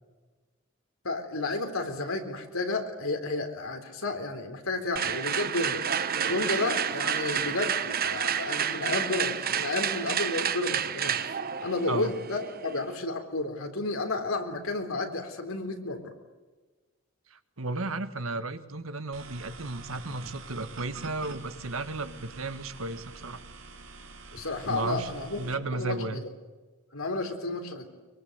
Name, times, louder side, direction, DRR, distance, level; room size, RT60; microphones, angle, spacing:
voice 1, 1.0-5.8 6.2-11.2 11.6-16.1 24.3-26.3 26.9-27.9, left 2 dB, 85° left, 5 dB, 3.8 m, -32 dB
sound 1, 5.0-12.9, right 8 dB, 45° right, 1.0 m, -30 dB
voice 2, 17.3-23.4 24.7-25.1 25.4-26.2, right 2 dB, 85° right, 10 dB, 1.7 m, -34 dB
sound 2, 19.1-25.6, right 3 dB, 65° right, 2.7 m, -46 dB
24.0 x 23.0 x 8.1 m, 1.3 s
head